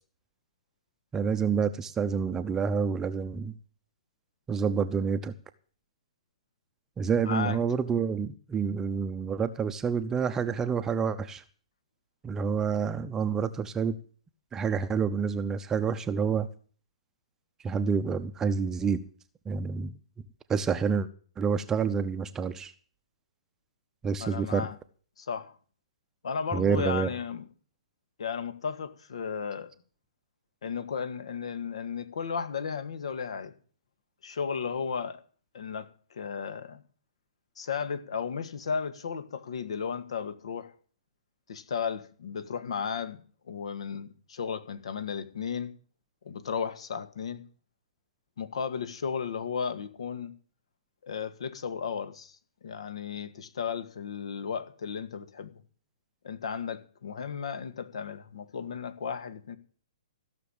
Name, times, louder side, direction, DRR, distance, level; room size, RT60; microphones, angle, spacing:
voice 1, 1.1-3.5 4.5-5.3 7.0-11.4 12.2-14.0 14.5-16.5 17.6-19.0 19.5-20.0 20.5-21.1 21.4-22.7 24.0-24.7 26.5-27.1, right 6 dB, 15° right, 0.8 m, -28 dB
voice 2, 7.2-7.6 24.2-24.8 25.2-25.6 26.2-27.4 28.2-29.7 30.6-33.5 34.2-35.2 35.5-36.8 37.6-40.7 41.5-43.2 43.5-45.7 46.2-47.4 48.4-50.3 51.0-52.4 52.6-55.6 56.2-59.6, left 6 dB, 65° left, 1.8 m, -34 dB
15.5 x 6.9 x 8.7 m
figure-of-eight pair, 125°, 3 cm